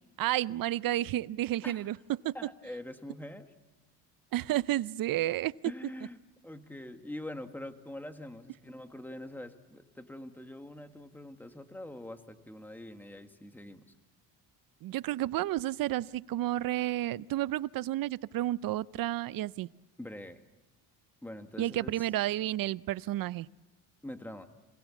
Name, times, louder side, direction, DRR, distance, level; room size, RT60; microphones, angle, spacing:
voice 1, 0.2-2.0 2.2-2.3 4.3-5.5 14.8-19.7 21.6-23.5, right 14 dB, 60° right, 19 dB, 0.6 m, -31 dB
voice 2, 2.3-3.5 5.6-13.9 20.0-20.4 21.2-22.1 24.0-24.5, left 1 dB, 5° left, 7 dB, 1.6 m, -44 dB
26.0 x 18.0 x 7.2 m, 1.2 s
cardioid pair, 105°, 40 cm